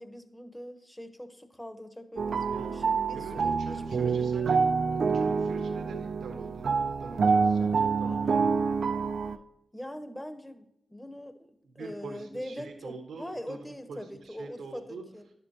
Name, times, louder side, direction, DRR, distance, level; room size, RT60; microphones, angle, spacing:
voice 1, 0.0-4.4 9.7-15.3, equal, 10° left, 8 dB, 1.0 m, -43 dB
sound 1, 2.2-9.4, right 5 dB, 70° right, 0.4 m, -27 dB
voice 2, 3.1-8.4 11.8-15.0, right 3 dB, 90° right, 3 dB, 1.0 m, -44 dB
10.5 x 6.8 x 2.9 m, 0.81 s
cardioid pair, 50°, 0 cm